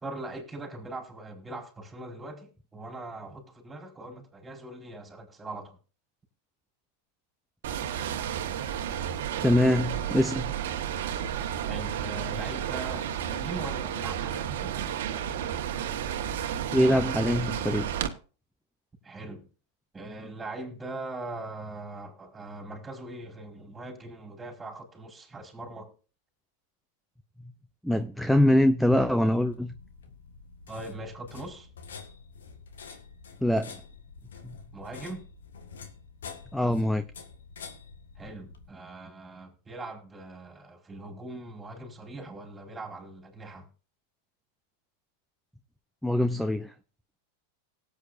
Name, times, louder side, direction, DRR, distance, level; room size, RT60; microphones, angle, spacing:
voice 1, 0.0-5.8 11.6-15.0 19.0-19.4 19.9-25.9 30.7-31.7 34.7-35.2 38.2-43.7, right 2 dB, 15° right, 4.6 m, -41 dB
sound 1, 7.6-18.1, right 9 dB, 70° right, 1.4 m, -32 dB
voice 2, 9.4-10.5 16.7-17.9 27.8-29.7 33.4-33.7 34.4-34.6 36.5-37.0 46.0-46.7, left 1 dB, ahead, 0.6 m, -23 dB
sound 2, 29.4-38.7, left 5 dB, 85° left, 1.7 m, -47 dB
18.5 x 8.6 x 2.6 m
hypercardioid pair, 105°, 0 cm